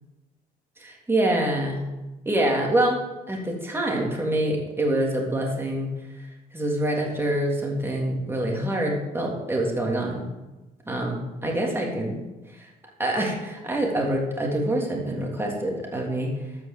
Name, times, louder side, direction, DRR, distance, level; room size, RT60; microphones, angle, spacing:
voice 1, 0.8-1.8 2.2-3.0 3.3-5.9 6.5-10.2 10.9-12.2 12.5-12.7 13.0-16.3, right 1 dB, 15° right, -1 dB, 3.5 m, -25 dB
13.0 x 6.4 x 8.0 m, 1.1 s
cardioid pair, 110°, 17 cm